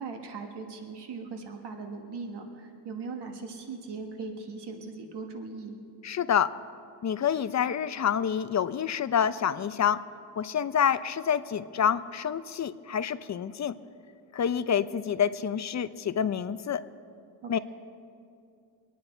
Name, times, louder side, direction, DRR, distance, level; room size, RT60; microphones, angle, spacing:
voice 1, 0.0-5.8 17.4-17.6, right 4 dB, 75° right, 4 dB, 1.5 m, -39 dB
voice 2, 6.0-6.5 7.0-10.0 10.4-13.7 14.3-16.8 17.5-17.6, left 8 dB, 40° left, 14 dB, 0.6 m, -27 dB
24.5 x 9.5 x 4.4 m, 2.4 s
cardioid pair, 75°, 41 cm